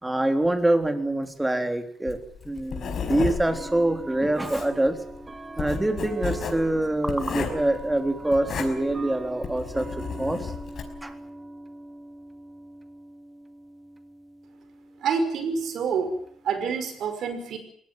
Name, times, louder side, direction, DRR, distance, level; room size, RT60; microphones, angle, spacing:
voice 1, 0.0-2.2 2.4-5.0 5.6-9.9 10.2-10.5 11.0-11.1, right 1 dB, 10° right, 7 dB, 3.7 m, -25 dB
sound 1, 1.2-1.3 2.4-2.5 3.5-16.7, right 2 dB, 30° right, 2.2 m, -41 dB
Writing, 2.1-11.0, left 6 dB, 60° left, 5.4 m, -33 dB
voice 2, 15.0-16.2 16.4-17.6, right 5 dB, 70° right, 9 dB, 5.6 m, -27 dB
21.5 x 18.5 x 9.3 m, 0.67 s
cardioid pair, 90°, 0 cm